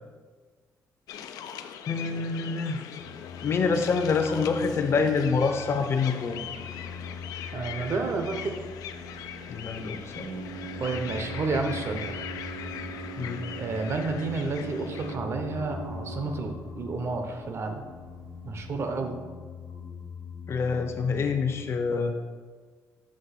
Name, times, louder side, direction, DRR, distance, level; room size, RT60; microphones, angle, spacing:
sound 1, 1.1-15.2, left 9 dB, 90° left, 0.4 m, -41 dB
voice 1, 1.9-2.9 3.4-6.4 9.5-10.3 13.2-13.4 20.5-22.2, left 4 dB, 45° left, 6 dB, 0.7 m, -26 dB
sound 2, 3.0-21.6, left 5 dB, 65° left, 1.2 m, -43 dB
voice 2, 7.5-8.6 10.8-12.2 13.5-17.8 18.4-19.2, right 3 dB, 45° right, 5 dB, 0.8 m, -30 dB
Organ, 8.5-18.7, right 4 dB, 90° right, 0.7 m, -42 dB
7.6 x 3.1 x 5.9 m, 1.5 s
cardioid pair, 115°, 6 cm